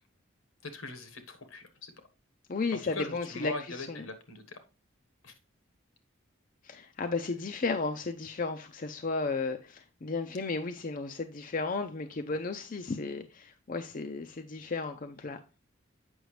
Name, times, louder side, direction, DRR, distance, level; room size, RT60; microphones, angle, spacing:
voice 1, 0.7-1.9 2.8-4.6 5.2-5.3, left 2 dB, 80° left, 1.4 m, -41 dB
voice 2, 2.5-4.1 6.6-15.4, left 3 dB, 40° left, 0.5 m, -34 dB
7.9 x 5.9 x 3.2 m
head